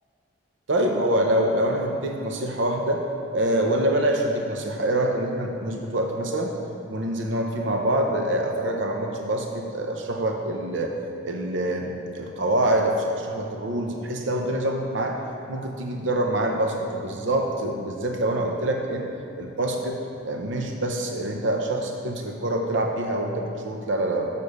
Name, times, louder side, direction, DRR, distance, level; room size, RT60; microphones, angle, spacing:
voice 1, 0.7-3.0 3.3-6.5 6.9-10.9 11.2-15.2 15.5-19.1 19.4-20.0 20.2-24.3, right 1 dB, 65° right, 2 dB, 0.7 m, -25 dB
6.8 x 6.8 x 6.5 m, 2.8 s
head